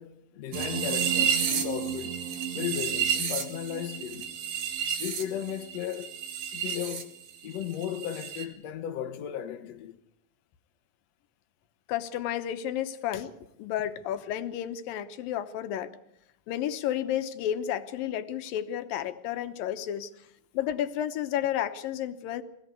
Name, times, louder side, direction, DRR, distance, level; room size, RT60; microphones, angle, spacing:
voice 1, 0.0-2.2 2.5-4.3 5.0-6.1 6.5-7.2 7.4-10.0 13.1-13.3, left 10 dB, 60° left, 2.1 m, -35 dB
sound 1, 0.5-7.0 7.3-8.5, right 8 dB, 75° right, 3.7 m, -31 dB
voice 2, 11.9-13.3 13.6-15.9 16.5-20.1 20.5-22.4, left 11 dB, 85° left, 2.7 m, -31 dB
22.0 x 17.0 x 8.2 m
omnidirectional pair, 3.9 m